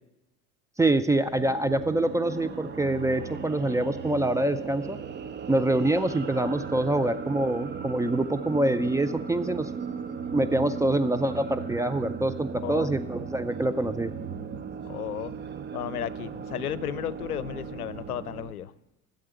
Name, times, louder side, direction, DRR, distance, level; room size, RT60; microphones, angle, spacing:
voice 1, 0.8-5.0 5.5-9.7 10.3-14.1, right 1 dB, 10° right, 10 dB, 0.4 m, -25 dB
sound 1, 1.2-18.5, right 6 dB, 25° right, 0.8 m, -37 dB
voice 2, 12.6-13.0 14.8-15.3 15.7-18.7, left 11 dB, 80° left, 18 dB, 0.6 m, -34 dB
12.0 x 7.7 x 8.1 m, 0.92 s
figure-of-eight pair, 75°, 44 cm